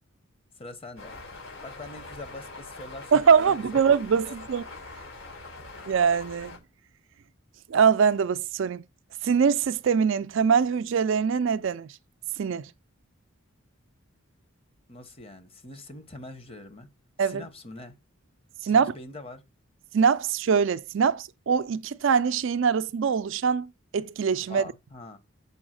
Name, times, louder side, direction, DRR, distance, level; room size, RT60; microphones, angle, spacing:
voice 1, 0.5-1.2 1.6-3.8 4.2-4.4 5.6-5.7 14.9-16.9 17.2-18.0 18.6-19.4 24.4-25.2, left 2 dB, 25° left, 0.9 m, -43 dB
sound 1, 1.0-6.6, left 3 dB, 70° left, 4.2 m, -43 dB
voice 2, 3.1-4.6 5.9-6.6 7.7-8.8 9.2-11.9 12.4-12.7 17.2-17.4 18.6-18.9 19.9-24.6, right 6 dB, 60° right, 0.4 m, -23 dB
7.0 x 4.8 x 6.3 m
head